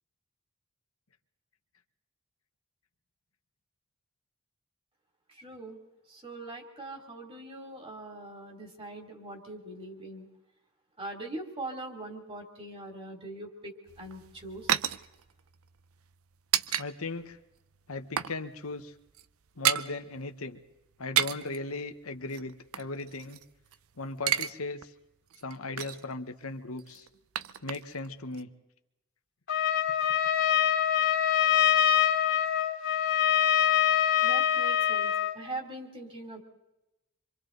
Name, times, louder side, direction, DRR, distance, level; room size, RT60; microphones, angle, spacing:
voice 1, 5.3-5.8 6.1-10.3 11.0-13.7 14.0-14.7 34.2-36.4, right 2 dB, 25° right, 3 dB, 3.1 m, -42 dB
sound 1, 13.9-16.9 17.2-17.3 17.7-18.4 18.6-18.8 19.1-19.9 20.9-21.6 22.3-23.8 24.0-24.5 24.8-24.9 25.3-26.1 26.8-28.1 28.3-28.4, right 10 dB, 90° right, 0.6 m, -31 dB
voice 2, 16.8-17.4 17.9-18.9 19.6-20.6 21.0-23.4 24.0-24.8 25.4-27.1 27.6-28.5, left 3 dB, 85° left, 7 dB, 1.3 m, -37 dB
Trumpet, 29.5-35.4, left 10 dB, 65° left, 2.4 m, -24 dB
26.5 x 25.0 x 4.0 m, 0.94 s
head